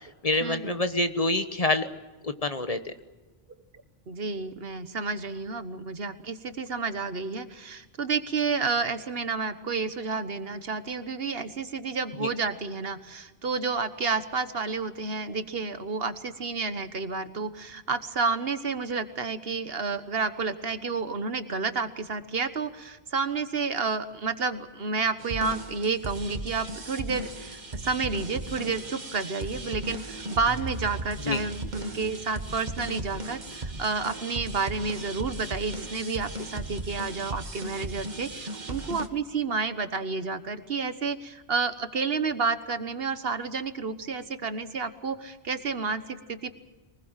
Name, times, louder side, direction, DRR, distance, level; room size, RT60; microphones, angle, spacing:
voice 1, 0.2-1.9 2.2-2.9 12.2-12.3 31.3-31.4, left 2 dB, 35° left, 9 dB, 1.2 m, -26 dB
voice 2, 4.1-46.5, right 4 dB, 65° right, 10 dB, 1.5 m, -30 dB
sound 1, 25.2-39.1, right 1 dB, 45° right, 1.8 m, -37 dB
23.5 x 20.5 x 7.5 m, 1.2 s
omnidirectional pair, 1.1 m